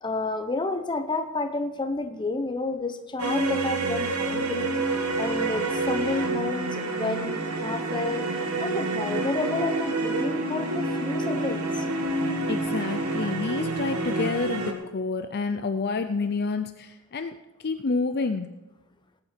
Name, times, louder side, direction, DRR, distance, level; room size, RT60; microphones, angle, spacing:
voice 1, 0.0-4.8 5.2-8.2 8.6-11.8, left 3 dB, 20° left, 7 dB, 0.9 m, -30 dB
sound 1, 3.2-14.7, right 2 dB, 75° right, 1.8 m, -28 dB
voice 2, 12.5-18.5, left 4 dB, 45° left, 9 dB, 0.5 m, -29 dB
19.0 x 8.8 x 4.5 m, 1.0 s
head